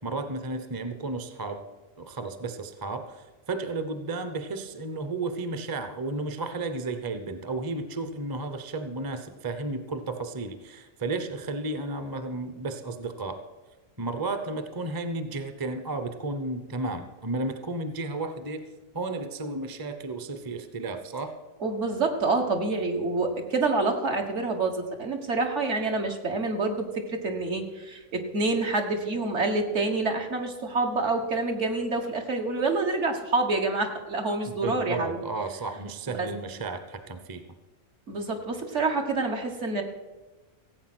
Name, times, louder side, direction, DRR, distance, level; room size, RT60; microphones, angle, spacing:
voice 1, 0.0-1.6 2.0-13.4 14.0-18.7 18.9-21.3 34.5-37.4, right 3 dB, 20° right, 9 dB, 0.7 m, -33 dB
voice 2, 21.6-35.2 36.1-36.3 38.1-39.8, right 3 dB, 65° right, 3 dB, 1.8 m, -27 dB
16.0 x 8.3 x 6.2 m, 1.2 s
omnidirectional pair, 1.3 m